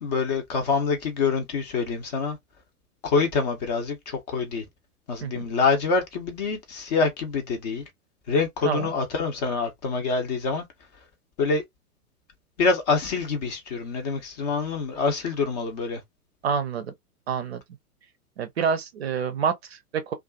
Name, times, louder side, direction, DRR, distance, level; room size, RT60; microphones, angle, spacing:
voice 1, 0.0-2.4 3.0-4.6 5.1-7.8 8.3-10.6 11.4-11.6 12.6-16.0, left 4 dB, 25° left, 0.6 m, -26 dB
voice 2, 16.4-16.9 17.3-17.6 18.4-20.1, right 6 dB, 45° right, 0.5 m, -27 dB
2.4 x 2.4 x 2.3 m
figure-of-eight pair, 110°, 46 cm